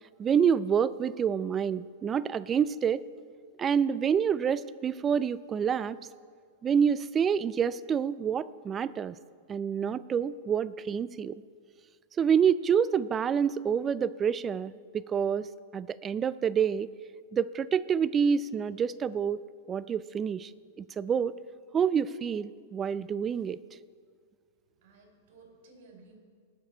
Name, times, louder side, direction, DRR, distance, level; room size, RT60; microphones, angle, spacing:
voice 1, 0.2-3.0 3.6-6.0 6.6-9.2 9.5-11.4 12.2-16.9 17.3-19.4 19.7-20.5 20.8-21.3 21.7-23.6, right 7 dB, 20° right, 17 dB, 0.3 m, -27 dB
voice 2, 24.6-26.2, right 3 dB, 60° right, 2 dB, 3.7 m, -56 dB
19.0 x 7.1 x 4.4 m, 2.1 s
supercardioid pair, 150°, 0 cm